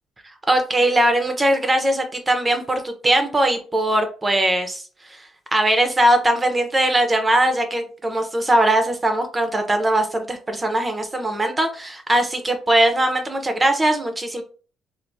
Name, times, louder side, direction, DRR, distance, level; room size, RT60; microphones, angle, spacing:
voice 1, 0.5-4.8 5.1-5.2 5.5-14.4, right 1 dB, 20° right, 6 dB, 0.6 m, -20 dB
3.4 x 2.5 x 2.6 m, 0.38 s
cardioid pair, 90°, 0 cm